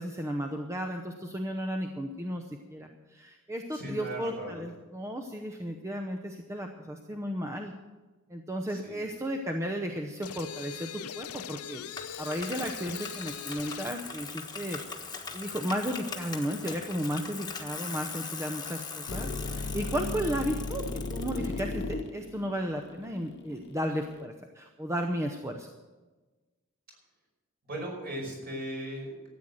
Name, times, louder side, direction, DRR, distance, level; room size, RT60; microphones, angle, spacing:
voice 1, 0.0-7.7 8.3-11.8 12.2-14.8 15.3-25.7, equal, 15° right, 3 dB, 0.8 m, -34 dB
voice 2, 3.7-4.6 8.7-9.0 17.8-18.0 27.6-29.3, right 1 dB, 45° right, -1 dB, 5.3 m, -38 dB
sound 1, 10.2-14.0, left 9 dB, 80° left, 0.5 m, -41 dB
Bicycle, 12.0-21.6, left 5 dB, 20° left, 1.4 m, -40 dB
sound 2, 19.1-24.2, left 2 dB, 50° left, 0.9 m, -35 dB
13.5 x 9.0 x 7.8 m, 1.2 s
head